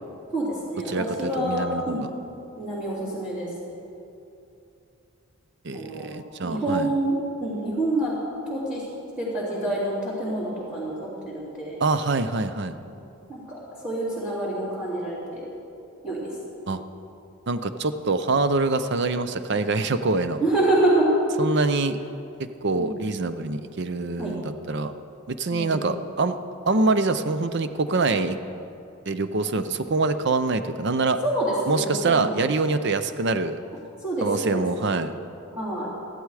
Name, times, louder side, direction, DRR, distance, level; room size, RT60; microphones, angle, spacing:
voice 1, 0.3-2.0 2.6-3.5 5.7-8.1 8.5-8.8 9.2-11.8 12.9-13.0 13.3-13.6 13.8-15.4 16.0-16.3 20.4-21.1 22.8-23.0 24.2-24.3 25.5-25.9 31.2-32.3 34.0-34.6 35.5-35.9, right 1 dB, 5° right, -13 dB, 3.0 m, -27 dB
voice 2, 0.9-2.1 5.6-6.9 11.8-12.8 16.7-16.8 17.5-20.4 21.4-22.0 22.6-24.9 25.3-26.4 26.7-28.4 29.1-31.2 31.7-33.6 34.2-35.1, right 3 dB, 50° right, 11 dB, 0.6 m, -25 dB
14.5 x 11.5 x 4.8 m, 2.7 s
head